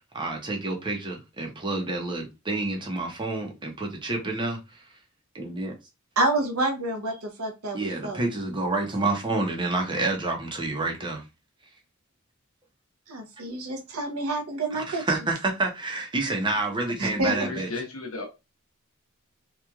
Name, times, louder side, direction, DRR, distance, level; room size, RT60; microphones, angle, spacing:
voice 1, 0.1-4.8 5.3-5.7 7.7-11.2 14.7-17.7, right 2 dB, 20° right, 0.7 m, -28 dB
voice 2, 6.2-8.2 13.1-15.0 17.0-17.5, right 2 dB, 85° right, 0.7 m, -28 dB
voice 3, 17.2-18.3, left 3 dB, 70° left, 0.8 m, -34 dB
3.0 x 2.4 x 2.3 m
head